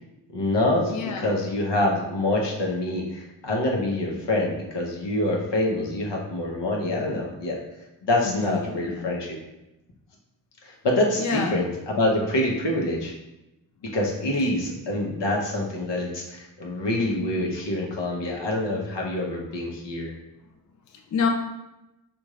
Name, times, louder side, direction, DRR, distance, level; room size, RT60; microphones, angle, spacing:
voice 1, 0.3-7.6 8.0-9.4 10.6-13.1 13.9-20.1, left 1 dB, 65° left, -1 dB, 0.9 m, -26 dB
voice 2, 0.9-1.3 8.2-9.1 11.2-11.6 20.9-21.3, left 5 dB, 40° left, 2 dB, 0.4 m, -28 dB
3.6 x 2.5 x 3.1 m, 0.97 s
cardioid pair, 55°, 46 cm